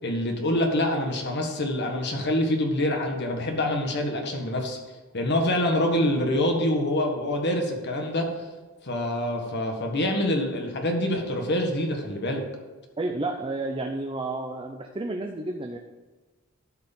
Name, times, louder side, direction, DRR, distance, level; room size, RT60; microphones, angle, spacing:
voice 1, 0.0-4.8 5.1-8.3 8.8-12.4, left 1 dB, 55° left, 3 dB, 1.6 m, -26 dB
voice 2, 13.0-15.8, right 2 dB, 25° right, 3 dB, 0.6 m, -31 dB
13.0 x 4.8 x 5.4 m, 1.2 s
head